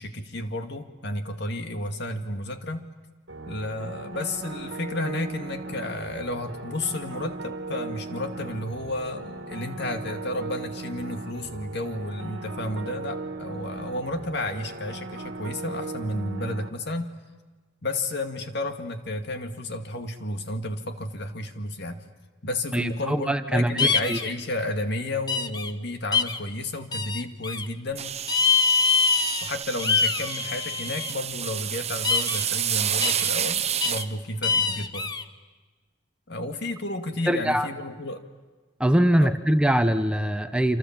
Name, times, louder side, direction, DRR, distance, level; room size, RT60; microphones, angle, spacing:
voice 1, 0.0-2.9 3.5-17.1 17.8-22.0 22.4-28.2 29.4-35.1 36.3-38.2 39.2-39.3, left 1 dB, 60° left, 6 dB, 2.0 m, -32 dB
sound 1, 3.3-16.7, right 3 dB, 70° right, 1.8 m, -37 dB
voice 2, 22.7-24.2 37.3-37.7 38.8-40.8, right 1 dB, 5° right, 8 dB, 0.9 m, -22 dB
sound 2, 23.8-24.3 25.3-25.7 26.1-26.4 26.9-27.6 28.3-29.5 29.8-31.1 32.0-32.4 33.0-33.3 33.8-34.0 34.4-35.2, left 5 dB, 20° left, 0.9 m, -24 dB
sound 3, 28.0-34.0, right 9 dB, 35° right, 0.9 m, -29 dB
28.5 x 27.0 x 7.3 m, 1.3 s
head